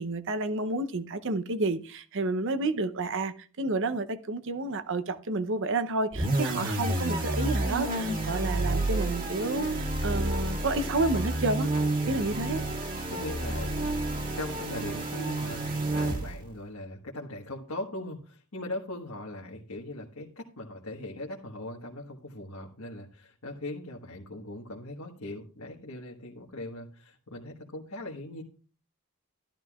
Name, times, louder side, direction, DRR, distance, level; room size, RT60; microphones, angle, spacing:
voice 1, 0.0-11.7 12.0-12.6, right 2 dB, 60° right, 0.8 m, -30 dB
sound 1, 6.1-16.5, right 2 dB, 40° right, 2.2 m, -30 dB
voice 2, 12.0-12.4 13.1-13.8 14.3-28.4, left 1 dB, 80° left, 1.4 m, -40 dB
13.0 x 12.0 x 2.4 m
head